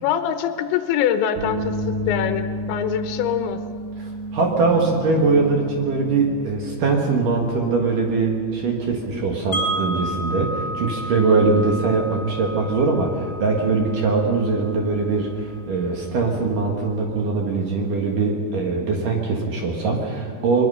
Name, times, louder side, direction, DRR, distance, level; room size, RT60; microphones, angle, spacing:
voice 1, 0.0-3.6, left 9 dB, 75° left, 9 dB, 3.1 m, -24 dB
sound 1, 1.4-17.3, equal, 80° right, 4.6 m, -35 dB
voice 2, 4.0-20.6, right 4 dB, 60° right, 1 dB, 2.6 m, -22 dB
Wind chime, 9.5-15.5, right 1 dB, 25° left, 3.3 m, -32 dB
22.0 x 21.5 x 5.5 m, 2.4 s
omnidirectional pair, 5.5 m